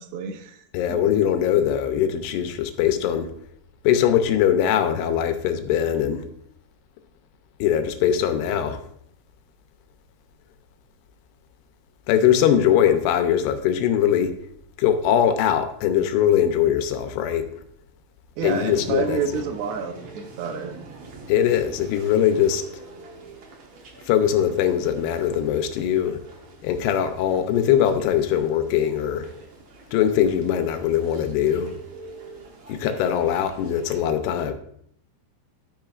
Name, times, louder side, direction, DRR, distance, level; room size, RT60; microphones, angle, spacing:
voice 1, 0.0-0.6 1.0-1.1 18.4-20.7, right 6 dB, 85° right, 6 dB, 2.9 m, -29 dB
voice 2, 0.7-3.3 3.8-6.2 7.6-8.8 12.1-14.4 14.8-17.5 18.4-19.4 21.3-22.6 24.1-26.2 26.6-29.3 29.9-31.7 32.7-34.5, left 9 dB, 85° left, 8 dB, 2.8 m, -21 dB
sound 1, 18.4-34.0, right 3 dB, 65° right, 1.5 m, -44 dB
13.5 x 6.4 x 2.4 m, 0.68 s
omnidirectional pair, 4.7 m